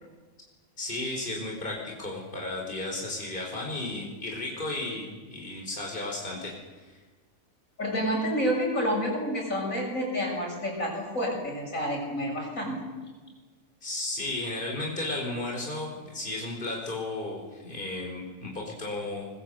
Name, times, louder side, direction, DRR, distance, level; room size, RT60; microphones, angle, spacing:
voice 1, 0.8-7.0 13.8-19.3, left 2 dB, 40° left, -1 dB, 5.0 m, -34 dB
voice 2, 7.8-12.8, equal, 80° left, 0 dB, 7.4 m, -29 dB
24.5 x 21.5 x 8.0 m, 1.3 s
omnidirectional pair, 1.4 m